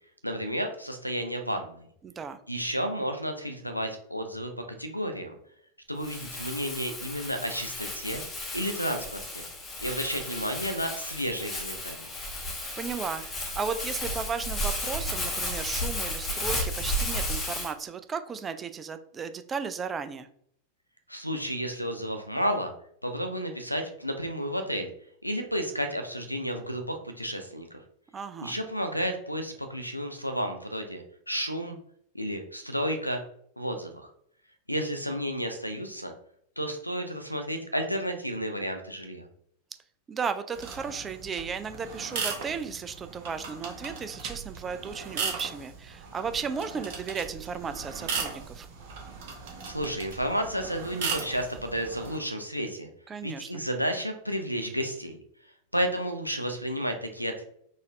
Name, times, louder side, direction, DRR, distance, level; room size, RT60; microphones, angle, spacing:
voice 1, 0.2-1.8 2.5-4.5 4.8-5.3 5.9-8.2 8.5-9.4 9.8-12.0 21.1-22.7 23.0-24.9 25.2-27.8 28.4-31.8 32.1-33.2 33.6-34.1 34.7-36.1 36.6-39.3 49.6-52.9 53.2-55.2 55.7-57.4, equal, 90° left, 7 dB, 0.5 m, -32 dB
voice 2, 2.0-2.4 12.8-20.3 28.1-28.5 40.1-48.7 53.1-53.5, right 5 dB, 20° right, 10 dB, 0.3 m, -35 dB
Crumpling crinkling, 6.0-17.7, left 1 dB, 20° left, 0.9 m, -33 dB
sound 1, 40.5-52.2, right 5 dB, 50° right, 0.9 m, -37 dB
3.9 x 2.5 x 3.0 m, 0.67 s
figure-of-eight pair, 90°, 0 cm